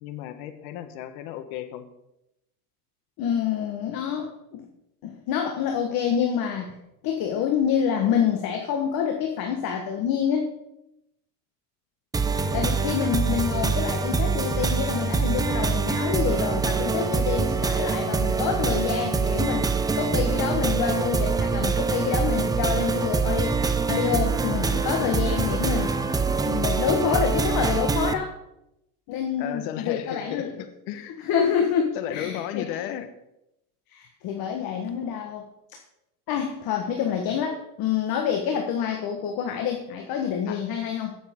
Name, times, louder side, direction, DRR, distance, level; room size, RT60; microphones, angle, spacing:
voice 1, 0.0-1.9 12.3-13.2 29.4-31.2 31.9-33.1 37.3-37.4 40.5-40.6, left 11 dB, 65° left, 10 dB, 1.3 m, -35 dB
voice 2, 3.2-4.6 5.0-6.7 7.0-10.6 12.5-23.6 23.9-25.9 26.4-28.3 29.1-30.5 31.2-32.8 33.9-35.4 36.3-41.2, left 8 dB, 50° left, 3 dB, 1.5 m, -27 dB
sound 1, 12.1-28.1, right 4 dB, 10° right, 0.4 m, -24 dB
17.0 x 7.3 x 3.7 m, 0.86 s
supercardioid pair, 115°, 46 cm